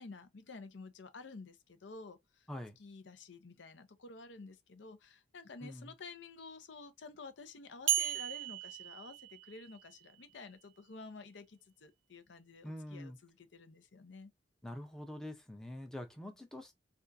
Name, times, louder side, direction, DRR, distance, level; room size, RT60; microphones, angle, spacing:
voice 1, 0.0-2.5 2.8-14.3, left 3 dB, 75° left, 0.6 m, -51 dB
sound 1, 7.9-9.9, right 12 dB, 85° right, 0.5 m, -35 dB
voice 2, 12.6-13.2 14.6-16.7, left 1 dB, 5° left, 0.5 m, -45 dB
3.4 x 2.4 x 2.5 m
head